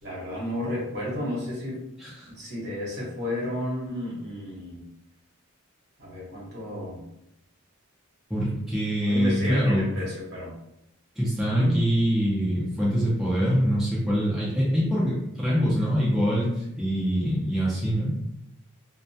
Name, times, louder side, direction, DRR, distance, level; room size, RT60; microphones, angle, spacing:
voice 1, 0.0-1.8 2.3-4.9 6.0-7.0 9.1-10.5 11.5-11.8, equal, 55° right, -5 dB, 0.9 m, -32 dB
voice 2, 2.0-2.3 8.3-9.9 11.2-18.1, equal, ahead, -8 dB, 0.5 m, -24 dB
2.1 x 2.1 x 2.6 m, 0.83 s
head